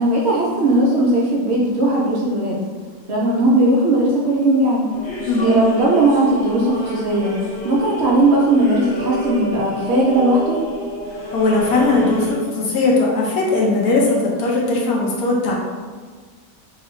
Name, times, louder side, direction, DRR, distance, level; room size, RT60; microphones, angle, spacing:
voice 1, 0.0-2.6 3.1-4.9 5.4-7.4 7.6-10.6, right 1 dB, 65° right, -4 dB, 0.6 m, -17 dB
sound 1, 4.9-12.3, left 1 dB, 50° left, 0.9 m, -29 dB
voice 2, 5.2-5.6 11.3-15.5, left 2 dB, 75° left, -3 dB, 1.2 m, -18 dB
2.9 x 2.6 x 3.1 m, 1.5 s
omnidirectional pair, 1.6 m